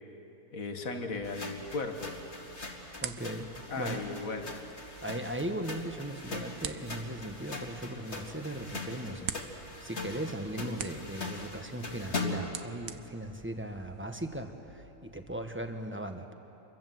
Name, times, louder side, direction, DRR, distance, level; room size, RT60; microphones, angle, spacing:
voice 1, 0.5-2.1 3.7-4.5, left 3 dB, 75° left, 5 dB, 2.2 m, -36 dB
sound 1, 1.1-15.6, right 1 dB, 90° left, 3.0 m, -57 dB
sound 2, 1.2-12.6, left 3 dB, 50° left, 2.6 m, -41 dB
sound 3, 2.1-14.3, right 9 dB, 85° right, 1.4 m, -47 dB
voice 2, 3.0-3.5 3.8-4.0 5.0-16.3, right 1 dB, 10° right, 5 dB, 1.3 m, -38 dB
27.5 x 23.0 x 7.8 m, 2.9 s
omnidirectional pair, 1.5 m